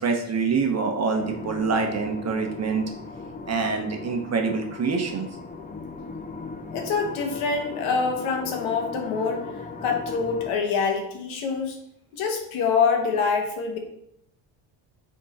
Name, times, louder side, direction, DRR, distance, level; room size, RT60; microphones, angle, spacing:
voice 1, 0.0-2.9 3.5-5.3, right 4 dB, 35° right, 4 dB, 1.0 m, -25 dB
sound 1, 1.2-10.5, left 4 dB, 20° left, 0.6 m, -38 dB
voice 2, 6.7-9.4 9.8-11.8 12.1-13.8, left 5 dB, 80° left, 3 dB, 1.4 m, -25 dB
6.0 x 3.8 x 4.2 m, 0.76 s
cardioid pair, 110°, 47 cm